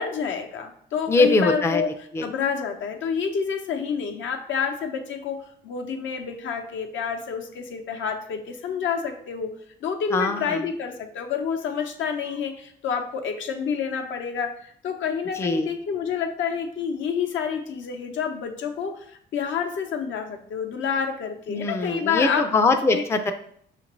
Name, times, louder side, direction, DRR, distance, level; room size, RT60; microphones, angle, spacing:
voice 1, 0.0-1.9 2.2-9.5 9.8-14.6 14.8-22.5 22.9-23.0, left 6 dB, 75° left, 4 dB, 0.6 m, -28 dB
voice 2, 1.1-1.8 2.1-2.3 10.1-10.6 15.3-15.7 21.5-23.3, left 3 dB, 15° left, 6 dB, 0.4 m, -22 dB
5.8 x 2.5 x 3.0 m, 0.66 s
cardioid pair, 90°, 20 cm